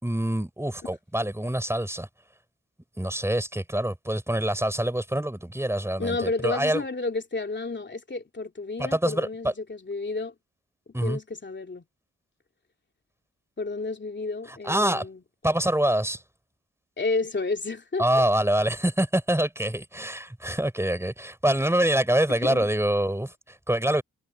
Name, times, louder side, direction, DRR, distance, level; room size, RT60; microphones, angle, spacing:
voice 1, 0.0-2.1 3.0-6.8 8.8-9.5 10.9-11.2 14.6-15.1 15.4-16.2 18.0-24.0, right 1 dB, 10° right, 5.4 m, -25 dB
voice 2, 6.0-10.3 11.0-11.8 13.6-15.2 17.0-18.2 22.3-22.7, left 3 dB, 35° left, 3.0 m, -31 dB
wide cardioid pair, 110°, 32 cm